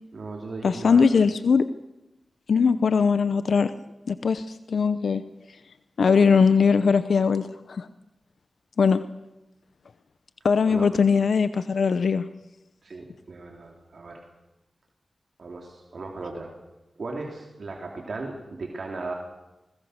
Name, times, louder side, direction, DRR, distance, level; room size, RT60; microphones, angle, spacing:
voice 1, 0.1-1.0 10.7-10.9 12.8-14.3 15.4-16.5 17.0-19.1, right 3 dB, 70° right, 1 dB, 3.0 m, -37 dB
voice 2, 0.6-1.7 2.5-3.7 4.1-5.2 6.0-7.9 8.8-9.0 10.4-12.3, left 5 dB, 85° left, 12 dB, 0.7 m, -20 dB
21.5 x 20.0 x 6.5 m, 0.98 s
cardioid pair, 50°, 0 cm